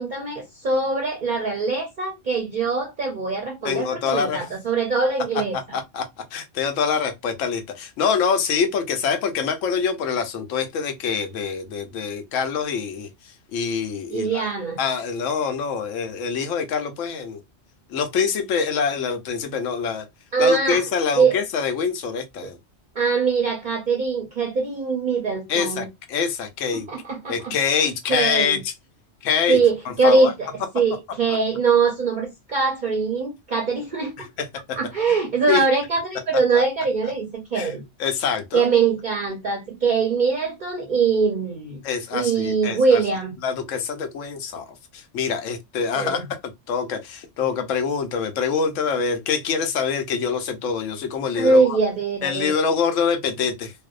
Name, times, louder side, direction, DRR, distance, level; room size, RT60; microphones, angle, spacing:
voice 1, 0.0-5.8 14.1-14.8 20.3-20.8 21.1-21.4 23.0-25.9 26.7-28.6 29.5-30.5 30.7-34.1 34.8-37.8 38.5-41.8 42.1-43.3 46.0-46.3 51.3-52.5, right 4 dB, 55° right, 0.6 m, -22 dB
voice 2, 3.6-4.5 5.7-6.0 6.3-14.5 14.8-17.4 17.9-20.0 20.4-22.6 25.5-26.9 27.3-28.7 29.2-29.6 29.9-30.3 31.3-31.4 34.2-34.3 34.7-34.8 35.5-35.6 36.5-36.6 37.5-37.7 38.0-38.7 41.8-43.0 43.4-44.6 44.9-46.3 46.7-51.8 52.2-53.7, left 6 dB, 85° left, 1.0 m, -25 dB
2.6 x 2.0 x 2.4 m
omnidirectional pair, 1.3 m